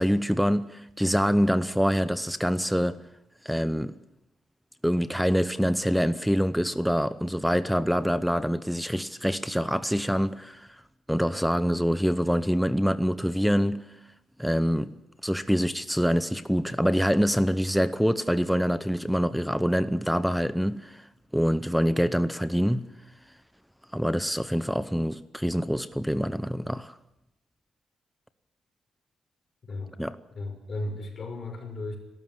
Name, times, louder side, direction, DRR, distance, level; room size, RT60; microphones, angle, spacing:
voice 1, 0.0-3.0 3.4-4.0 4.8-10.7 11.1-13.8 14.4-14.9 15.2-21.1 21.3-22.9 23.9-26.9 30.0-30.1, equal, ahead, 0.8 m, -25 dB
voice 2, 29.6-30.0 30.3-32.0, left 2 dB, 40° left, 5.9 m, -35 dB
27.5 x 13.0 x 9.5 m
cardioid pair, 115°, 0 cm